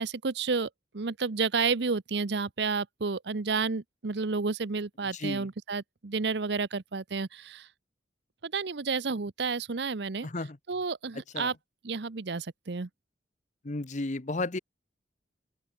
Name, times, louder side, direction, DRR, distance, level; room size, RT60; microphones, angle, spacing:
voice 1, 0.0-7.7 8.4-10.3 10.7-11.5 11.8-12.9, right 4 dB, 65° right, 0.8 m, -31 dB
voice 2, 5.1-5.5 10.2-10.6 11.3-11.5 13.6-14.6, left 2 dB, 40° left, 1.0 m, -33 dB
open air
head